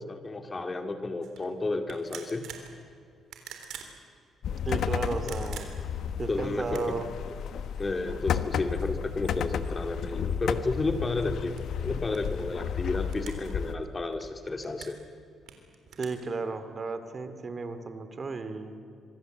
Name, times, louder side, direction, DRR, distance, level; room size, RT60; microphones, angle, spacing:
voice 1, 0.0-2.5 6.3-6.9 7.8-15.0, left 3 dB, 25° left, 7 dB, 2.2 m, -32 dB
sound 1, 1.2-1.4 1.9-2.7 3.2-3.9 4.8-6.0 6.6-7.1 7.7-7.8 8.3-10.4 10.8-12.4 13.1-13.5 13.8-15.0 15.5-16.1, right 8 dB, 80° right, 3.6 m, -46 dB
sound 2, 4.4-13.8, left 7 dB, 70° left, 1.2 m, -33 dB
voice 2, 4.6-5.7 6.2-7.1 16.0-18.8, right 4 dB, 40° right, 10 dB, 2.5 m, -34 dB
25.5 x 24.0 x 8.0 m, 2.4 s
cardioid pair, 90°, 0 cm